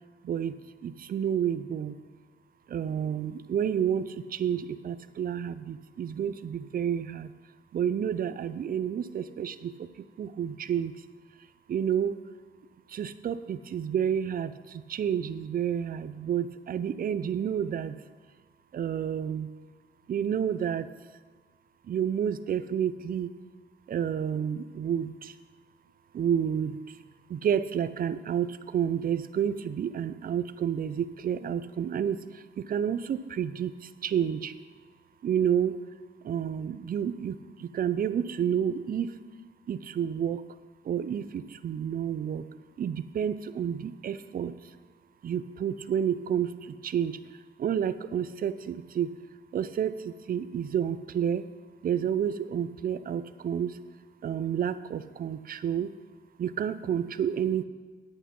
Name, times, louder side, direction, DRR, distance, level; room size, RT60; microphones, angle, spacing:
voice 1, 0.2-0.5 0.8-2.0 2.7-7.3 7.7-9.7 10.2-10.9 11.7-12.1 12.9-18.0 18.7-19.5 20.1-20.9 21.9-23.3 23.9-25.3 26.1-26.8 27.3-34.5 35.2-35.8 36.2-39.1 39.7-40.4 40.8-42.4 42.8-44.5 45.2-47.2 47.6-49.1 49.5-51.4 51.8-53.8 54.2-55.9 56.4-57.6, right 8 dB, 45° right, 14 dB, 0.6 m, -30 dB
9.9 x 8.4 x 5.4 m, 1.5 s
cardioid pair, 90°, 20 cm